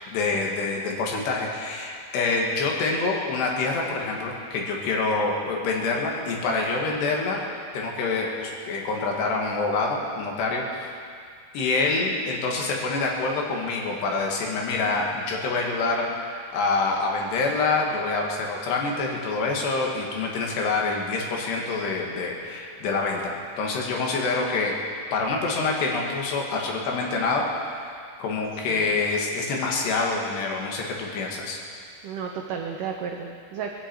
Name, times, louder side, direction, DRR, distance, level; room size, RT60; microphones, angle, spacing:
voice 1, 0.1-7.4 7.7-10.9 11.5-24.7 25.1-27.5 27.8-27.9 28.2-31.6, left 3 dB, 75° left, -1 dB, 4.0 m, -26 dB
voice 2, 32.0-33.7, right 6 dB, 90° right, 2 dB, 1.8 m, -33 dB
21.0 x 15.0 x 4.6 m, 2.2 s
omnidirectional pair, 5.0 m